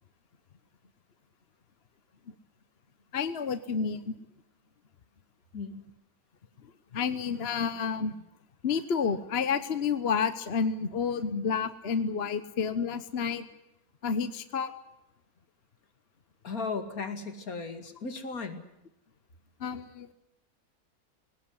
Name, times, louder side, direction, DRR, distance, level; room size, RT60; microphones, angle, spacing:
voice 1, 3.1-4.1 6.9-8.1 8.6-13.5 14.0-14.7 19.6-20.1, left 6 dB, 45° left, 12 dB, 1.2 m, -30 dB
voice 2, 5.5-5.9 16.4-18.6, left 4 dB, 70° left, 8 dB, 2.8 m, -36 dB
22.0 x 18.5 x 9.7 m, 0.86 s
omnidirectional pair, 1.6 m